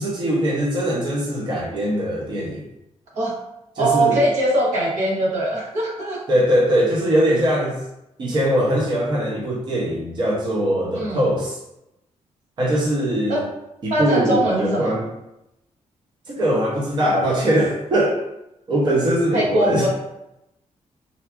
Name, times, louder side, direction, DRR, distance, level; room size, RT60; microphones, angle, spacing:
voice 1, 0.0-2.6 3.8-4.2 6.3-7.8 8.2-11.6 12.6-13.4 13.8-15.1 16.3-18.2 18.7-19.9, equal, 40° right, -3 dB, 0.5 m, -21 dB
voice 2, 3.8-6.2 11.0-11.2 13.3-13.4 13.9-15.0 19.3-19.9, right 1 dB, 80° right, -4 dB, 0.9 m, -21 dB
3.6 x 2.3 x 2.3 m, 0.88 s
wide cardioid pair, 175°, 12 cm